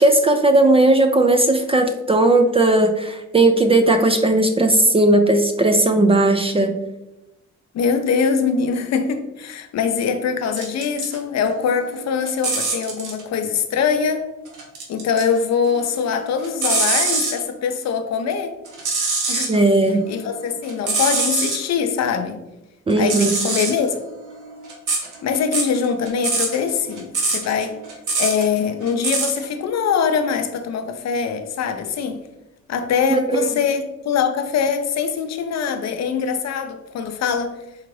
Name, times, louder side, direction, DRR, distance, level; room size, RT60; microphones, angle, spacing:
voice 1, 0.0-6.7 19.5-20.0 22.9-23.4 33.3-33.6, right 2 dB, 20° right, 6 dB, 0.3 m, -16 dB
voice 2, 7.7-14.3 14.9-18.5 19.3-19.6 19.9-22.4 23.0-24.0 25.2-27.8 28.2-32.2 32.7-37.5, left 6 dB, 60° left, 8 dB, 0.6 m, -23 dB
sound 1, 10.6-11.2 11.5-13.2 14.5-15.4 15.7-17.4 18.7-19.6 20.0-21.6 22.9-29.4, right 3 dB, 80° right, 1.1 m, -24 dB
4.6 x 2.5 x 3.2 m, 0.96 s
cardioid pair, 90°, 30 cm